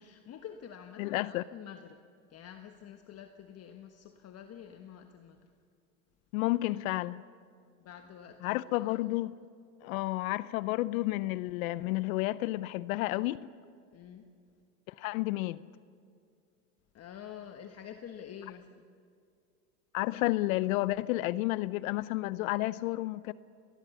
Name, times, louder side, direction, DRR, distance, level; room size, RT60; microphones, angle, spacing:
voice 1, 0.0-2.0 2.3-5.5 7.8-8.9 13.9-14.2 16.9-18.9, left 9 dB, 35° left, 1.4 m, -48 dB
voice 2, 1.0-1.4 6.3-7.2 8.4-9.3 9.8-13.4 14.9-15.6 19.9-23.3, left 18 dB, 65° left, 0.7 m, -31 dB
28.0 x 19.5 x 7.1 m
hypercardioid pair, 110°, 45 cm